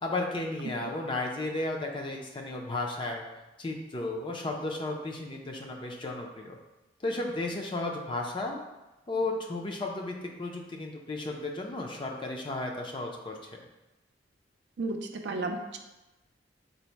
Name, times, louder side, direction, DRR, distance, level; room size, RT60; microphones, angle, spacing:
voice 1, 0.0-3.2 3.6-6.6 7.0-8.6 9.1-13.6, left 2 dB, 25° left, 1 dB, 0.4 m, -34 dB
voice 2, 14.8-15.8, right 2 dB, 65° right, 5 dB, 0.4 m, -33 dB
4.0 x 2.1 x 4.4 m, 1.0 s
head